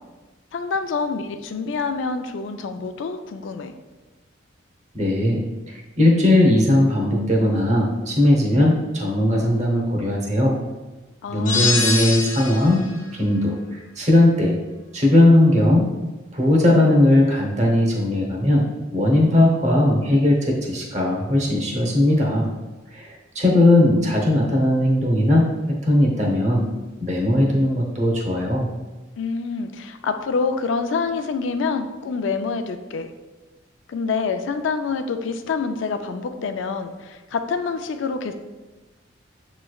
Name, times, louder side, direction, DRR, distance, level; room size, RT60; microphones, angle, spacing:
voice 1, 0.5-3.7 11.2-11.8 29.2-33.1 33.9-38.3, left 4 dB, 75° left, 8 dB, 0.4 m, -26 dB
voice 2, 4.9-10.6 11.3-12.8 13.1-14.5 14.9-15.9 16.3-18.7 18.9-22.5 22.9-25.5 25.8-26.6 27.0-28.7, left 1 dB, 35° right, -1 dB, 0.8 m, -18 dB
sound 1, 11.5-12.8, left 4 dB, 40° left, 0.7 m, -23 dB
6.9 x 3.1 x 2.3 m, 1.2 s
head